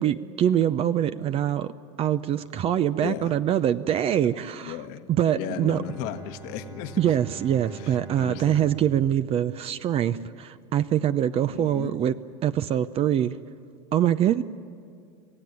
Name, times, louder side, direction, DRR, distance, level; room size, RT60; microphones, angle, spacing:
voice 1, 0.0-1.7 2.0-4.8 5.1-5.8 7.0-12.1 12.4-13.4 13.9-14.4, right 10 dB, 40° right, 13 dB, 0.6 m, -24 dB
voice 2, 3.0-3.3 4.6-5.1 5.3-7.0 7.7-8.6 11.5-12.0, left 11 dB, 65° left, 8 dB, 1.3 m, -36 dB
Bowed string instrument, 5.5-10.4, right 6 dB, 20° right, 1.3 m, -45 dB
26.5 x 16.0 x 9.3 m, 2.2 s
supercardioid pair, 105°, 16 cm